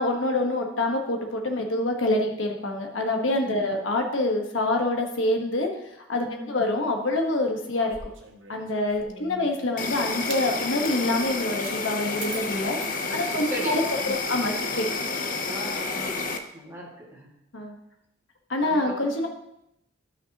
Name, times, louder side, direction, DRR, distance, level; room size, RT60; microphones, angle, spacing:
voice 1, 0.0-5.7 6.1-8.0 8.5-12.8 13.1-14.9 17.5-17.7 18.5-19.3, left 2 dB, 90° left, 2 dB, 1.3 m, -26 dB
voice 2, 6.2-6.6 9.1-9.5 13.0-13.2 13.5-13.8 14.1-14.2 15.5-17.3 18.6-19.2, right 1 dB, 15° right, -3 dB, 2.0 m, -38 dB
sound 1, 7.7-9.3 10.1-10.4 10.8-11.0 11.6-11.8 12.2-13.7, right 5 dB, 90° right, 1.3 m, -42 dB
Insect, 9.8-16.4, left 3 dB, 45° left, 0.7 m, -30 dB
13.0 x 5.8 x 2.9 m, 0.81 s
head